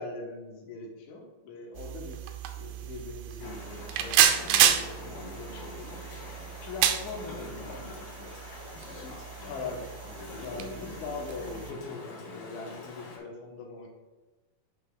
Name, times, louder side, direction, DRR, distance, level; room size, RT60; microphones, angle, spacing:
voice 1, 0.0-2.2 2.6-3.6 3.9-6.0 6.6-7.8 9.0-13.9, left 3 dB, 65° left, 0 dB, 2.2 m, -42 dB
sound 1, 1.7-11.7, right 10 dB, 80° right, 2.2 m, -30 dB
Chatter / Stream, 3.4-13.2, left 3 dB, 85° left, 4.2 m, -43 dB
11.5 x 5.6 x 2.3 m, 1.1 s
omnidirectional pair, 4.2 m